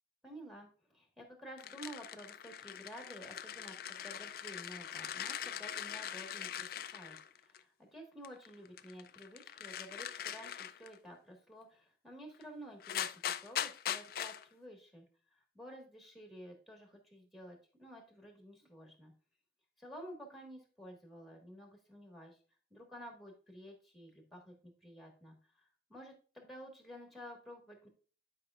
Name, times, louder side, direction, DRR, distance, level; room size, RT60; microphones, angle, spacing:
voice 1, 0.2-15.0 15.3-19.1 19.8-22.4 22.7-27.9, equal, ahead, 2 dB, 1.5 m, -52 dB
sound 1, 1.6-7.6 8.2-11.0 12.4-12.5 12.8-14.4, left 10 dB, 50° left, 0.3 m, -41 dB
10.5 x 5.1 x 2.4 m, 0.40 s
head